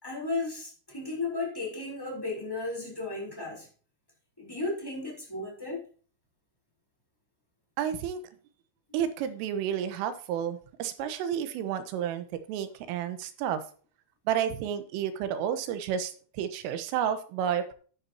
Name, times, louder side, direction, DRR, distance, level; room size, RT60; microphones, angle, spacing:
voice 1, 0.0-3.7 4.4-5.8, left 3 dB, 5° left, -2 dB, 3.0 m, -34 dB
voice 2, 7.8-8.2 8.9-13.6 14.3-17.7, right 9 dB, 90° right, 10 dB, 3.6 m, -31 dB
11.0 x 10.0 x 2.9 m, 0.41 s
omnidirectional pair, 5.7 m